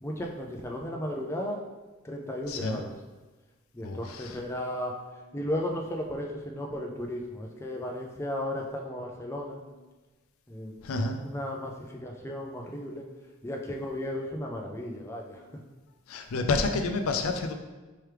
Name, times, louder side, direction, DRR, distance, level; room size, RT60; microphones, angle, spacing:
voice 1, 0.0-1.6 2.0-2.9 3.7-4.9 5.3-9.6 10.5-10.7 11.2-13.0 13.4-15.4, left 1 dB, 10° left, 0 dB, 0.3 m, -35 dB
voice 2, 2.5-2.8 3.8-4.4 10.8-11.2 16.1-17.5, left 3 dB, 75° left, 6 dB, 0.4 m, -29 dB
4.6 x 3.1 x 3.3 m, 1.2 s
head